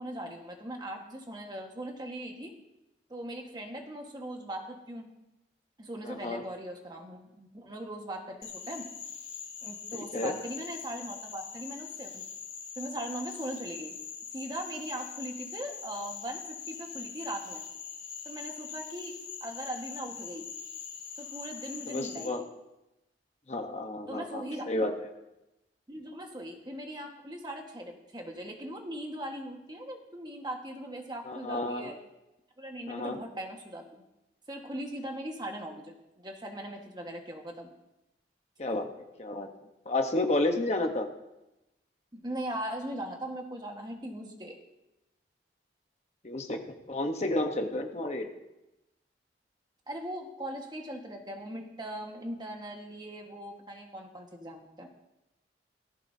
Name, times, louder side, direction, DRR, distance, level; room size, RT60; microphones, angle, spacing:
voice 1, 0.0-2.5 3.1-5.1 5.8-8.9 9.6-12.2 12.8-14.0 14.3-17.6 18.2-19.1 19.4-20.5 21.2-22.5 24.1-24.7 25.9-31.9 32.6-33.8 34.5-37.7 42.1-44.5 49.9-54.9, right 1 dB, 25° right, 2 dB, 1.5 m, -39 dB
voice 2, 6.0-6.4 9.9-10.3 21.9-22.4 23.5-25.1 31.2-31.9 32.9-33.2 38.6-38.9 39.2-39.5 39.8-41.1 46.2-46.6 46.9-48.3, left 2 dB, 40° left, 4 dB, 1.1 m, -31 dB
Frog, 8.4-22.3, left 7 dB, 90° left, 2.6 m, -42 dB
18.0 x 14.5 x 2.8 m, 0.95 s
head